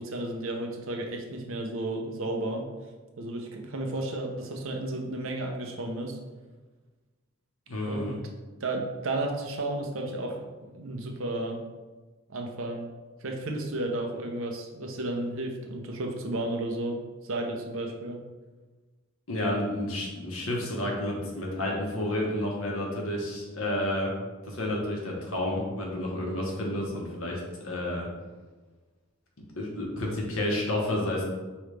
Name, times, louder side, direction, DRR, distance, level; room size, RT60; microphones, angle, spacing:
voice 1, 0.0-2.6 3.2-6.2 7.9-8.2 8.6-11.6 12.3-12.9 13.2-17.0 17.2-18.2, right 2 dB, 75° right, 2 dB, 0.7 m, -33 dB
voice 2, 7.7-8.2 19.3-24.1 24.4-28.1 29.6-31.2, left 1 dB, 85° left, -2 dB, 1.1 m, -30 dB
4.9 x 3.1 x 3.3 m, 1.3 s
head